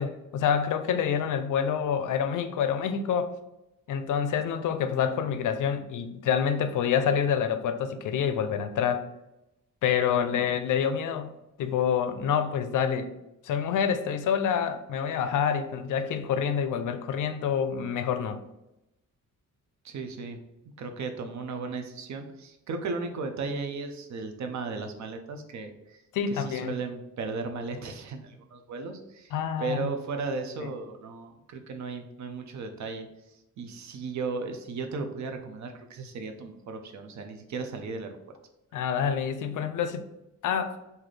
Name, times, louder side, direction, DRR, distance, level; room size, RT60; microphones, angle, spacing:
voice 1, 0.0-3.3 3.9-9.1 9.8-13.1 13.4-18.4 26.1-26.8 29.3-29.9 38.7-40.1 40.4-40.7, left 7 dB, 75° left, 9 dB, 0.5 m, -27 dB
voice 2, 19.8-20.4 20.8-26.0 26.3-33.1 33.6-38.2, right 4 dB, 60° right, 5 dB, 0.6 m, -35 dB
4.0 x 2.7 x 3.2 m, 0.90 s
wide cardioid pair, 170°, 31 cm